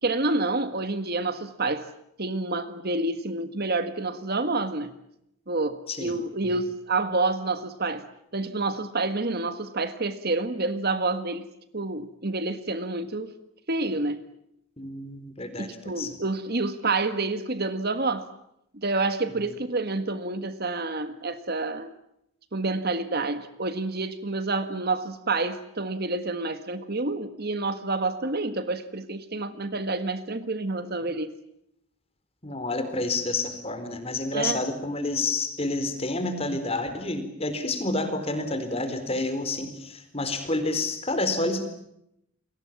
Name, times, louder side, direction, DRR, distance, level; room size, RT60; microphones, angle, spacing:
voice 1, 0.0-1.8 2.2-4.9 5.5-8.0 8.3-11.5 11.7-13.3 13.7-14.2 15.6-18.3 18.7-21.9 22.5-31.3 34.3-34.6, right 3 dB, 45° right, 10 dB, 1.7 m, -28 dB
voice 2, 14.8-16.2 32.4-41.7, left 2 dB, 25° left, 9 dB, 4.1 m, -29 dB
30.0 x 23.0 x 7.3 m, 0.79 s
head